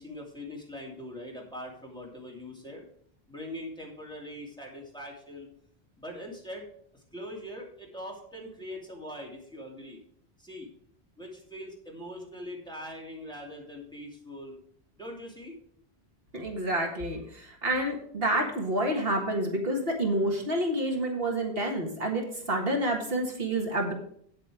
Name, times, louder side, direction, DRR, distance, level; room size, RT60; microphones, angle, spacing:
voice 1, 0.0-2.9 3.3-5.5 6.0-6.7 6.9-10.0 10.4-10.7 11.2-14.5 15.0-15.6, left 1 dB, 5° left, -2 dB, 2.6 m, -42 dB
voice 2, 16.3-23.9, right 1 dB, 65° right, 1 dB, 1.9 m, -28 dB
9.1 x 7.9 x 5.0 m, 0.63 s
omnidirectional pair, 1.1 m